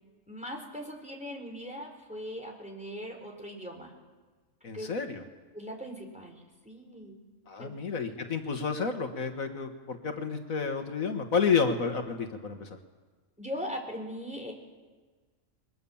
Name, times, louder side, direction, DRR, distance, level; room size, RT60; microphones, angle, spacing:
voice 1, 0.3-3.9 4.7-4.9 5.5-6.4 6.6-7.2 7.6-7.7 13.4-14.5, equal, 5° right, 1 dB, 4.2 m, -39 dB
voice 2, 4.6-5.2 7.5-12.8, left 5 dB, 75° left, 5 dB, 2.0 m, -30 dB
28.5 x 22.0 x 7.2 m, 1.4 s
omnidirectional pair, 1.4 m